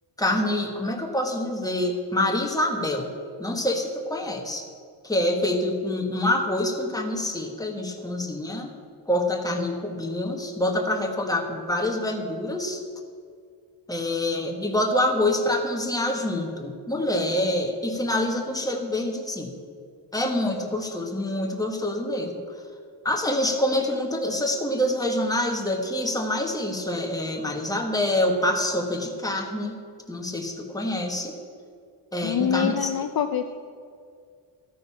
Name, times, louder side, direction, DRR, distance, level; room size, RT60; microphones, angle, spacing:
voice 1, 0.2-3.1 3.4-4.6 5.0-8.7 9.1-12.8 13.9-19.5 20.1-22.4 23.0-29.8 30.1-31.3 32.1-32.9, left 1 dB, 10° left, 2 dB, 1.2 m, -26 dB
voice 2, 32.2-33.6, left 8 dB, 50° left, 7 dB, 0.5 m, -25 dB
14.0 x 9.3 x 5.6 m, 2.2 s
wide cardioid pair, 175°, 46 cm